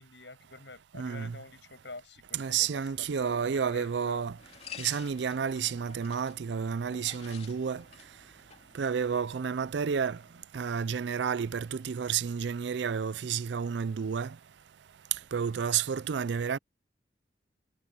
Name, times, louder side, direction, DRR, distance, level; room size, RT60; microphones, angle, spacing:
voice 1, 0.0-4.3, left 3 dB, 75° left, 7.1 m, -47 dB
voice 2, 0.9-1.4 2.3-4.4 4.8-7.8 8.7-10.2 10.5-14.3 15.3-16.6, right 7 dB, 70° right, 0.4 m, -31 dB
sound 1, 2.5-10.4, left 7 dB, 35° left, 2.8 m, -52 dB
head